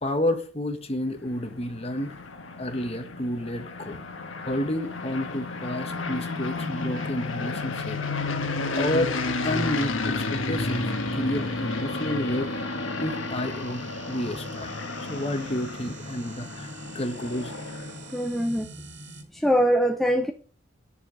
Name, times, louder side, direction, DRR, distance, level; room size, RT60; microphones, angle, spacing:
voice 1, 0.0-2.2 2.6-4.0 4.4-8.0 8.7-9.1 9.4-12.5 13.0-14.7 15.1-16.7 16.9-17.6, left 1 dB, 30° left, 1.4 m, -30 dB
sound 1, 1.0-18.2, left 3 dB, 90° left, 1.5 m, -32 dB
sound 2, 10.8-19.2, right 1 dB, 65° right, 2.5 m, -43 dB
voice 2, 18.1-18.7 19.3-20.3, equal, ahead, 0.7 m, -22 dB
10.0 x 7.0 x 6.6 m
head